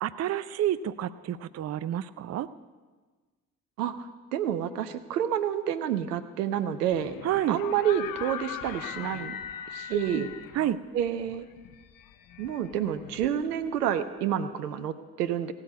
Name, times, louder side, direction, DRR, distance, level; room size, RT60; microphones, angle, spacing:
voice 1, 0.0-2.5 7.2-7.6 9.9-10.3 10.5-10.8, right 11 dB, 35° right, 14 dB, 0.6 m, -29 dB
voice 2, 3.8-7.1 7.5-9.4 9.7-10.3 10.9-11.5 12.4-15.5, right 9 dB, 75° right, 11 dB, 0.9 m, -29 dB
sound 1, 6.9-13.7, left 9 dB, 45° left, 1.0 m, -41 dB
17.0 x 8.7 x 9.3 m, 1.4 s
figure-of-eight pair, 50°, 47 cm